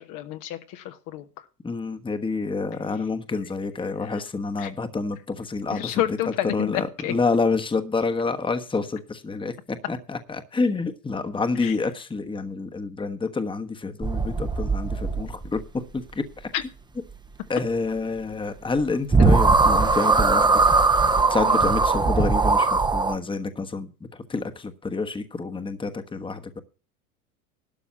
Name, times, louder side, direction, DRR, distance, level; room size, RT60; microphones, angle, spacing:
voice 1, 0.0-1.4 3.4-3.5 4.0-4.2 4.6-4.7 5.7-7.1 11.6-11.8 16.5-16.6 21.5-21.6, left 13 dB, 45° left, 1.1 m, -30 dB
voice 2, 1.6-5.9 6.5-16.2 17.5-20.5 21.3-23.9 24.3-26.6, left 4 dB, 10° left, 1.2 m, -28 dB
sound 1, 14.0-15.6 18.8-18.9 19.1-23.1, right 3 dB, 10° right, 1.0 m, -20 dB
12.5 x 6.0 x 7.2 m
hypercardioid pair, 90°, 45 cm